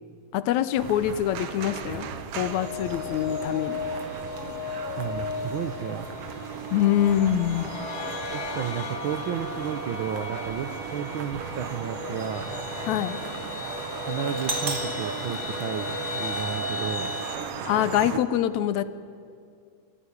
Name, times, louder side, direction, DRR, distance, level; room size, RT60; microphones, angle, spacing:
voice 1, 0.3-2.1 2.4-3.8 6.7-7.7 12.9-13.2 17.7-18.8, left 11 dB, 80° left, 13 dB, 2.1 m, -24 dB
sound 1, 0.8-18.2, right 7 dB, 60° right, 1.9 m, -37 dB
sound 2, 2.4-17.4, left 3 dB, 35° left, 1.9 m, -35 dB
voice 2, 5.0-6.1 8.3-12.5 14.1-17.1, right 8 dB, 80° right, 9 dB, 1.1 m, -32 dB
Doorbell, 14.4-16.4, right 3 dB, 35° right, 2.8 m, -35 dB
27.0 x 17.0 x 9.8 m, 2.3 s
omnidirectional pair, 3.4 m